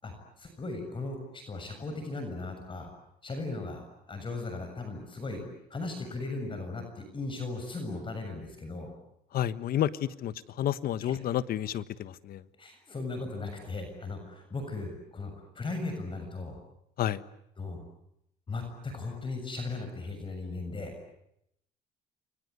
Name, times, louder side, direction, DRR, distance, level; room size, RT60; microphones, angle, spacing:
voice 1, 0.0-2.9 3.2-3.8 4.1-5.4 5.7-8.9 11.1-11.2 12.6-16.6 17.6-17.8 18.5-20.9, left 3 dB, 30° left, 6 dB, 6.9 m, -37 dB
voice 2, 9.3-12.4 17.0-17.2, left 11 dB, 60° left, 14 dB, 1.4 m, -30 dB
29.5 x 24.5 x 8.3 m, 0.79 s
cardioid pair, 110°, 17 cm